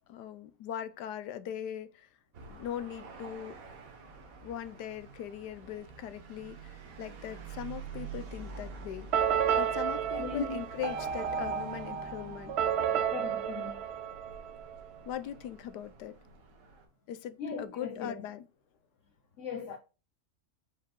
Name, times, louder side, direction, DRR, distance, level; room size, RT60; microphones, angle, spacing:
voice 1, 0.1-2.1 2.5-3.6 4.4-9.1 9.6-12.5 15.0-16.1 17.1-18.4, left 10 dB, 80° left, 1.2 m, -40 dB
sound 1, 2.3-16.8, right 4 dB, 55° right, 1.6 m, -48 dB
sound 2, 9.1-14.9, right 8 dB, 80° right, 0.5 m, -31 dB
voice 2, 10.1-10.6 13.1-13.8 17.4-18.2 19.4-19.8, left 5 dB, 55° left, 1.1 m, -38 dB
5.0 x 4.9 x 4.3 m
omnidirectional pair, 1.8 m